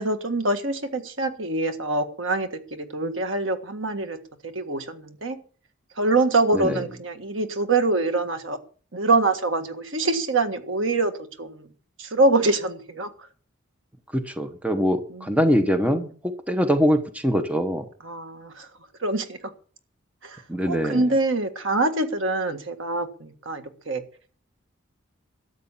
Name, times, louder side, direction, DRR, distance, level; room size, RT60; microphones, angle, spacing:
voice 1, 0.0-4.2 4.4-5.4 6.0-8.6 8.9-11.1 11.4-11.7 12.0-13.1 15.1-15.2 18.0-18.7 19.0-19.4 20.2-24.0, right 2 dB, 75° right, 1.7 m, -25 dB
voice 2, 14.1-17.8 20.5-21.1, equal, 5° right, 1.0 m, -23 dB
13.0 x 8.3 x 7.2 m
head